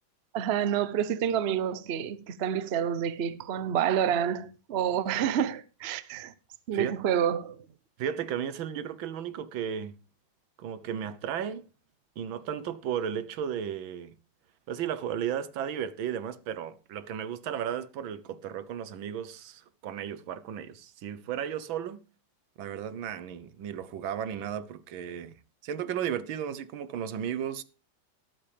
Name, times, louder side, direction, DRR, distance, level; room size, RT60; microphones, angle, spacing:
voice 1, 0.3-6.3 6.7-7.7, right 9 dB, 50° right, 0.8 m, -28 dB
voice 2, 8.0-10.0 10.6-11.7 12.2-14.2 14.7-22.0 22.6-25.3 25.6-27.6, right 9 dB, 90° right, 1.7 m, -34 dB
13.5 x 11.5 x 3.4 m
omnidirectional pair, 2.1 m